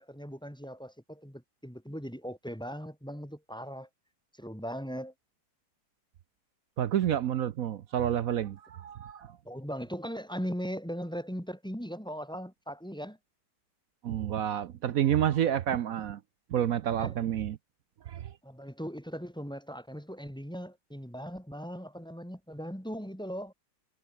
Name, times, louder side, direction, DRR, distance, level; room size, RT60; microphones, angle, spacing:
voice 1, 0.0-3.9 4.4-5.1 9.4-13.2 17.0-17.1 18.4-23.5, equal, ahead, 3.0 m, -39 dB
voice 2, 6.8-9.4 14.0-16.2 16.5-17.6 18.1-18.3, right 10 dB, 60° right, 0.9 m, -29 dB
omnidirectional pair, 2.0 m